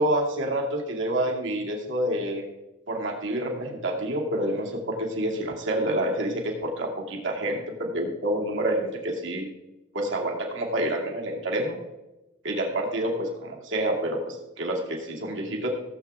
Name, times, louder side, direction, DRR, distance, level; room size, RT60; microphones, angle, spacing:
voice 1, 0.0-2.5 2.9-9.5 9.9-11.8 12.4-15.7, right 1 dB, 60° right, 0 dB, 2.3 m, -28 dB
16.5 x 7.8 x 3.6 m, 1.0 s
head